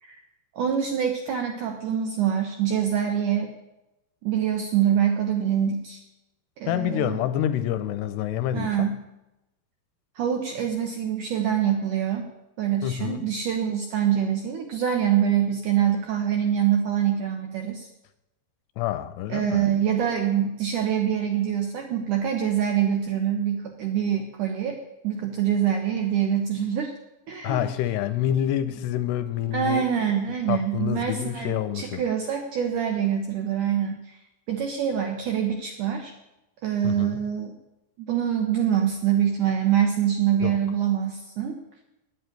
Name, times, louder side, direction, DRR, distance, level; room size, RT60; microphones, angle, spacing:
voice 1, 0.6-3.5 4.2-6.0 6.6-7.2 8.5-9.0 10.2-12.3 12.6-17.9 19.3-24.8 25.0-26.9 27.3-27.7 29.5-34.2 34.5-36.1 36.6-37.5 38.0-41.6, right 9 dB, 75° right, 4 dB, 1.8 m, -25 dB
voice 2, 6.7-8.9 12.8-13.2 18.8-19.6 27.4-29.9 30.5-32.0 36.8-37.2 40.4-40.6, left 11 dB, 85° left, 12 dB, 2.8 m, -27 dB
10.0 x 7.9 x 9.2 m, 0.95 s
omnidirectional pair, 4.9 m